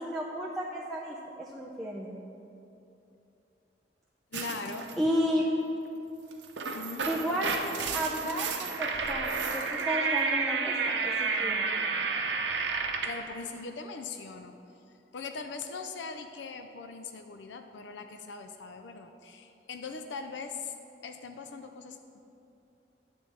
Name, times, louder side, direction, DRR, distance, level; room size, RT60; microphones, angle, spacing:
voice 1, 0.0-2.2 5.0-5.4 7.1-7.5 7.9-10.8 11.0-11.7, equal, ahead, -4 dB, 0.5 m, -32 dB
voice 2, 4.3-4.9 6.7-7.1 13.0-14.6 15.1-20.7 21.0-22.2, left 4 dB, 85° left, 7 dB, 0.5 m, -40 dB
sound 1, 4.3-5.0 6.3-13.2, right 4 dB, 90° right, 0.7 m, -31 dB
9.5 x 3.9 x 7.2 m, 2.8 s
head